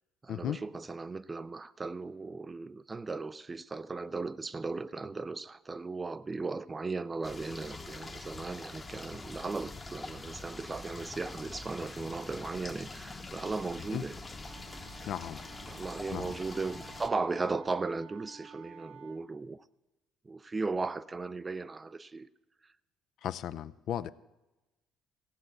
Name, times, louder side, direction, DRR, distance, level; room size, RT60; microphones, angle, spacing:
voice 1, 0.2-14.2 15.6-19.6 20.3-22.3, right 3 dB, 20° right, 0.4 m, -37 dB
sound 1, 7.2-17.1, left 2 dB, 15° left, 0.9 m, -44 dB
Wind instrument woodwind instrument, 14.4-19.2, right 6 dB, 85° right, 1.4 m, -53 dB
voice 2, 15.1-15.4 16.1-16.3 23.2-24.1, left 10 dB, 55° left, 0.4 m, -35 dB
15.5 x 7.5 x 8.1 m
cardioid pair, 140°, 0 cm